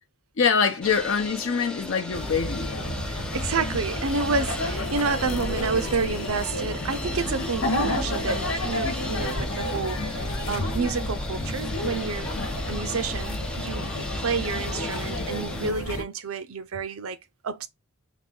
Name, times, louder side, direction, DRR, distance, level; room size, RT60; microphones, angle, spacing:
voice 1, 0.4-2.8 12.4-12.5, left 6 dB, 65° left, 0.6 m, -24 dB
sound 1, 0.8-15.7, left 1 dB, 5° left, 0.4 m, -38 dB
sound 2, 2.1-16.0, left 1 dB, 90° left, 1.2 m, -30 dB
voice 2, 3.1-12.3 12.7-17.2 17.4-17.7, right 4 dB, 85° right, 0.6 m, -29 dB
4.0 x 2.6 x 3.7 m
head